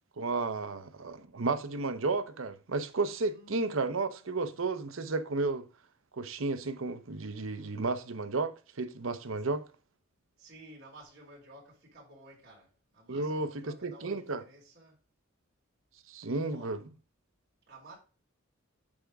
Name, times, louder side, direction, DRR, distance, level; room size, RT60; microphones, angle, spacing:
voice 1, 0.2-5.7 6.2-9.6 13.1-13.5 13.8-14.4 16.1-16.8, right 3 dB, 70° right, 0.8 m, -32 dB
voice 2, 3.3-4.7 10.4-15.0 16.2-16.8 17.7-17.9, right 1 dB, 50° right, 3.7 m, -54 dB
8.7 x 3.5 x 5.1 m
head